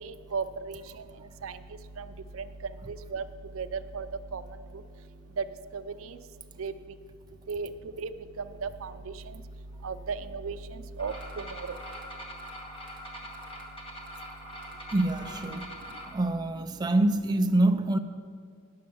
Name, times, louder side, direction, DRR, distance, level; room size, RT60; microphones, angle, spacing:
voice 1, 0.0-0.8 1.4-1.6 2.0-2.1 2.4-2.5 2.9-3.2 3.5-3.7 3.9-4.1 4.3-4.4 5.4-5.5 5.7-5.8 6.6-6.7 7.5-7.7 8.0-8.1 8.6-8.9 9.8-10.6 11.0-11.7, right 5 dB, 90° right, 12 dB, 0.5 m, -34 dB
sound 1, 11.0-16.1, equal, 25° left, 1.3 m, -43 dB
voice 2, 14.9-15.7 16.1-18.0, right 2 dB, 20° right, 6 dB, 0.4 m, -25 dB
9.5 x 6.5 x 7.0 m, 2.1 s
head